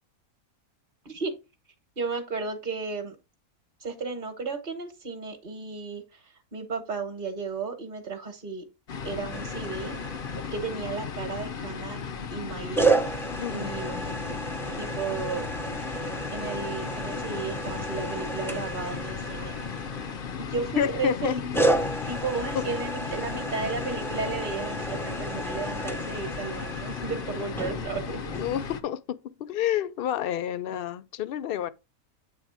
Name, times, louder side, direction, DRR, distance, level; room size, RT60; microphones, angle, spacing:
voice 1, 2.0-3.2 3.8-8.6 9.0-10.0 10.5-12.0 12.3-12.9 13.5-14.1 14.8-15.5 16.3-19.6 20.4-21.8 22.1-28.2, right 4 dB, 35° right, 1.3 m, -34 dB
sound 1, 8.9-28.8, left 6 dB, 50° left, 0.7 m, -36 dB
sound 2, 9.3-10.8 12.8-20.6 21.5-28.6, right 2 dB, 5° left, 0.4 m, -32 dB
voice 2, 20.8-21.4 22.5-22.7 28.1-31.7, left 10 dB, 90° left, 0.5 m, -29 dB
8.6 x 3.6 x 4.9 m
omnidirectional pair, 1.5 m